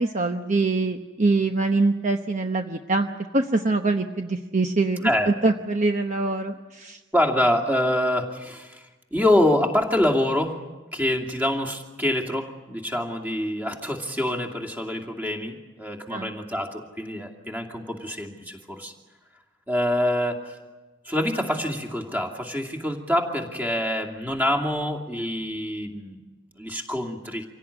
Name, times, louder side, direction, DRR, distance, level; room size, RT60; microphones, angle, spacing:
voice 1, 0.0-5.1 5.4-7.0 16.1-16.3, right 3 dB, 40° right, 5 dB, 0.9 m, -24 dB
voice 2, 7.1-10.6 10.9-18.9 19.7-20.6 21.0-26.2 26.5-27.4, left 1 dB, 10° right, 3 dB, 2.5 m, -25 dB
26.5 x 17.0 x 9.9 m, 1.2 s
head